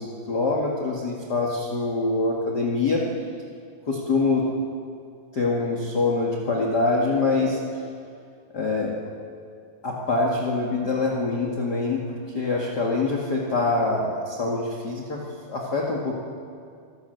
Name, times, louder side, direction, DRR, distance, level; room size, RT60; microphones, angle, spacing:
voice 1, 0.0-3.0 3.9-4.4 5.3-7.6 8.5-8.9 9.8-15.2 15.5-16.1, left 3 dB, 45° left, -2 dB, 1.3 m, -24 dB
26.5 x 13.0 x 8.0 m, 2.3 s
omnidirectional pair, 5.0 m